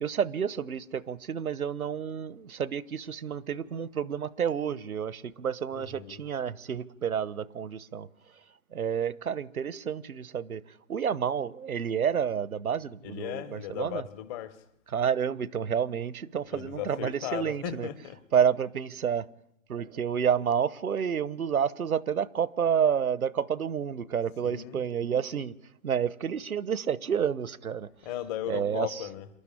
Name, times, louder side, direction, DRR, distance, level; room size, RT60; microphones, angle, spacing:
voice 1, 0.0-8.1 8.7-10.6 10.9-14.0 14.9-17.9 18.3-19.2 19.7-25.5 25.8-27.9 28.5-29.0, right 8 dB, 85° right, 1.0 m, -29 dB
voice 2, 5.7-6.2 13.0-14.6 16.5-18.2 24.4-24.8 28.0-29.3, left 11 dB, 15° left, 0.7 m, -37 dB
26.5 x 12.0 x 9.9 m
hypercardioid pair, 145°, 42 cm